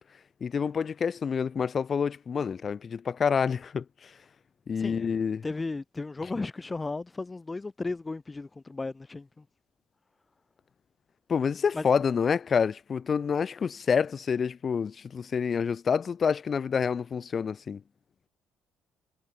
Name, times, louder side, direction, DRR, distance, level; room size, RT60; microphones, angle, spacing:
voice 1, 0.4-3.8 4.7-5.4 11.3-17.8, left 6 dB, 45° left, 1.4 m, -27 dB
voice 2, 5.4-9.3 11.7-11.8, left 3 dB, 25° left, 0.8 m, -35 dB
supercardioid pair, 75°, 0 cm